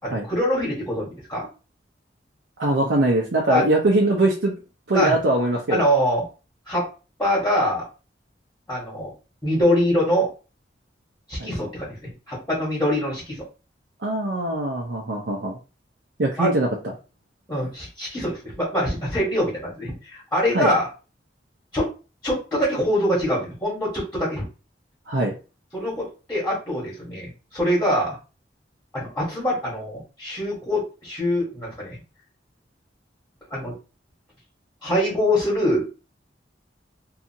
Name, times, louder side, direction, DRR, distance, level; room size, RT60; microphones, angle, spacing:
voice 1, 0.0-1.5 3.5-3.6 4.9-5.1 5.7-6.2 6.7-6.9 7.2-7.8 8.7-9.1 9.4-10.3 11.3-13.4 16.4-16.5 17.5-20.9 21.7-21.9 22.2-24.5 25.7-28.2 28.9-32.0 33.5-33.7 34.8-35.9, equal, 10° left, -6 dB, 1.2 m, -24 dB
voice 2, 2.6-4.6 4.9-5.9 11.4-11.5 14.0-15.6 16.2-16.9 20.5-20.7 25.1-25.3, right 2 dB, 75° right, -2 dB, 0.6 m, -22 dB
2.7 x 2.4 x 2.7 m, 0.32 s
head